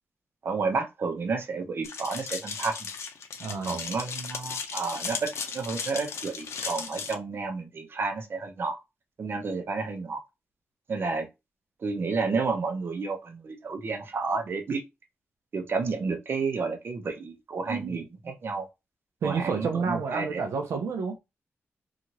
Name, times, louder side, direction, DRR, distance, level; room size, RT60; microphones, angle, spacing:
voice 1, 0.4-2.8 3.6-8.8 9.2-10.2 10.9-11.3 11.8-14.8 15.5-18.7 19.2-20.4, right 4 dB, 55° right, 0.7 m, -31 dB
sound 1, 1.8-7.1, left 5 dB, 75° left, 0.6 m, -36 dB
voice 2, 3.4-3.8 19.2-21.2, right 5 dB, 90° right, 0.5 m, -29 dB
2.8 x 2.5 x 2.8 m
cardioid pair, 95°, 5 cm